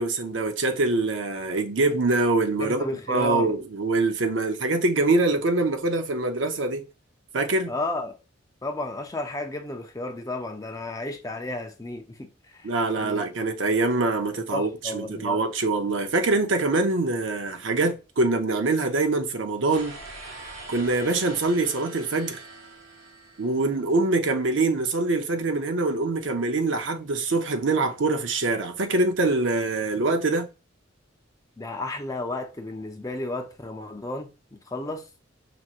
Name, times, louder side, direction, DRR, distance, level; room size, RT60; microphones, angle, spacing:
voice 1, 0.0-6.8 7.3-7.7 12.6-19.9 20.7-22.4 23.4-30.5, right 2 dB, 70° right, 0.7 m, -24 dB
voice 2, 2.6-3.5 7.7-8.2 8.6-12.7 13.0-13.2 14.5-15.4 31.6-35.1, left 2 dB, 15° left, 0.5 m, -33 dB
sound 1, 19.7-23.9, right 2 dB, 85° right, 1.2 m, -43 dB
5.8 x 3.0 x 2.5 m
head